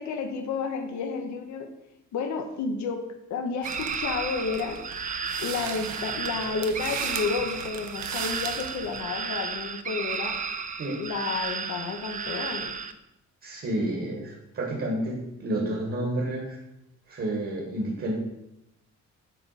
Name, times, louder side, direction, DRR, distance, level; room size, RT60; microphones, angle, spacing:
voice 1, 0.0-1.7 2.1-4.8 5.4-10.3 11.0-12.7, left 5 dB, 70° left, 5 dB, 0.9 m, -31 dB
sound 1, 3.6-12.9, right 5 dB, 25° right, 0.4 m, -33 dB
sound 2, 3.6-9.0, right 8 dB, 75° right, 0.7 m, -38 dB
voice 2, 13.4-16.6 17.1-18.2, right 1 dB, 45° right, -1 dB, 1.6 m, -30 dB
7.3 x 3.5 x 4.1 m, 0.86 s
cardioid pair, 90°, 30 cm